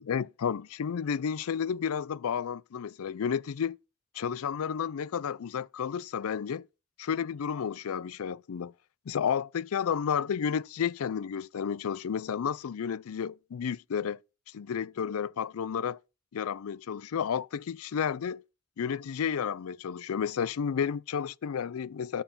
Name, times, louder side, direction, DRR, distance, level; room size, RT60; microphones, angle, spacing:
voice 1, 0.0-3.7 4.1-6.6 7.0-8.7 9.1-14.2 14.5-16.0 16.3-18.4 18.8-22.2, left 7 dB, 75° left, 0.4 m, -31 dB
8.9 x 7.0 x 5.6 m
head